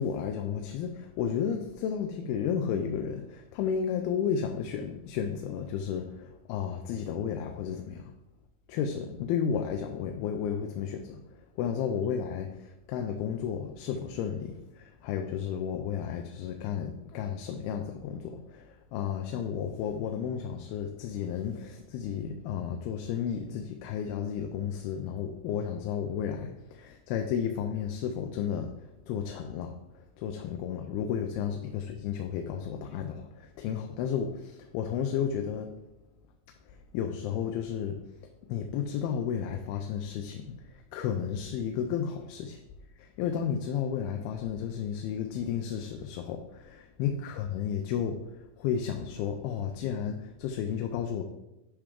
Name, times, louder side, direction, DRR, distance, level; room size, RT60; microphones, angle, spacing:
voice 1, 0.0-8.0 8.7-11.2 11.6-28.7 29.1-29.8 30.2-35.8 36.9-38.0 38.5-42.6 43.0-51.2, left 8 dB, 90° left, 4 dB, 2.6 m, -33 dB
10.5 x 5.0 x 3.6 m, 0.93 s
omnidirectional pair, 4.4 m